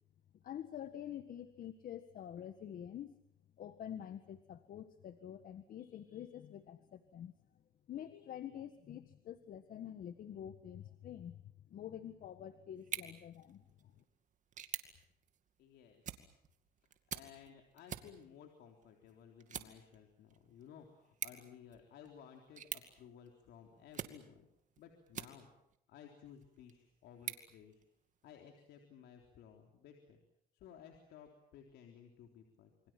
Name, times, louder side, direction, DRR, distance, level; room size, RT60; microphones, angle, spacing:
voice 1, 0.4-3.1 3.6-7.3 7.9-11.4 11.7-13.9, left 10 dB, 55° left, 10 dB, 1.6 m, -47 dB
sound 1, 12.8-25.8 26.3-28.3, right 8 dB, 45° right, 2.4 m, -49 dB
voice 2, 15.6-16.3 16.8-24.5 24.8-25.5 25.9-27.8 28.2-30.2 30.5-32.9, left 8 dB, 75° left, 3 dB, 3.8 m, -57 dB
28.0 x 24.5 x 7.6 m, 0.74 s
cardioid pair, 110°, 17 cm